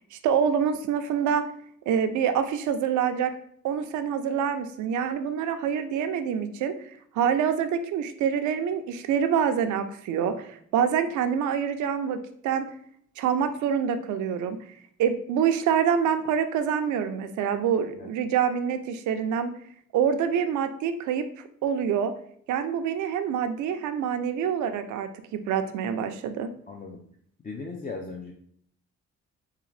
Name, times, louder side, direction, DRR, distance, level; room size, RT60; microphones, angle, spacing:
voice 1, 0.1-1.5 1.9-3.3 3.6-6.9 7.1-12.7 13.2-14.6 15.0-19.5 19.9-21.3 21.6-22.1 22.5-26.5, right 8 dB, 75° right, 8 dB, 0.5 m, -26 dB
voice 2, 26.7-27.0 27.4-28.3, left 4 dB, 30° left, 1 dB, 0.5 m, -37 dB
3.7 x 3.4 x 3.2 m, 0.63 s
cardioid pair, 90°, 30 cm